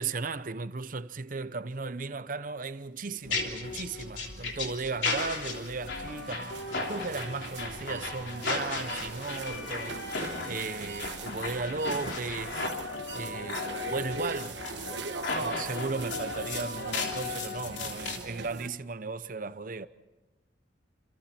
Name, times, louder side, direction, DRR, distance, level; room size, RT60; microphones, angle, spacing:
voice 1, 0.0-6.6 6.9-12.7 13.1-14.6 15.4-19.9, right 4 dB, 50° right, 0.8 m, -36 dB
sound 1, 3.2-18.2, left 3 dB, 80° left, 3.3 m, -35 dB
sound 2, 3.5-18.7, right 4 dB, 75° right, 1.2 m, -41 dB
28.5 x 27.5 x 4.4 m
head